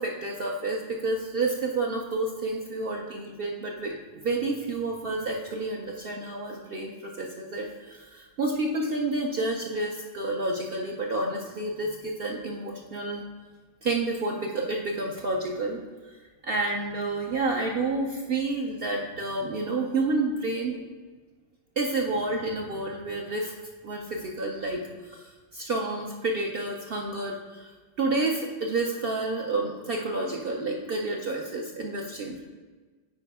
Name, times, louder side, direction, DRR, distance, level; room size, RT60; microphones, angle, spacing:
voice 1, 0.0-13.2 13.8-15.8 16.1-16.2 16.4-20.8 21.8-23.5 23.8-24.8 25.1-27.7 28.0-32.4, right 2 dB, 55° right, 0 dB, 0.7 m, -30 dB
9.0 x 4.6 x 3.5 m, 1.4 s
omnidirectional pair, 1.4 m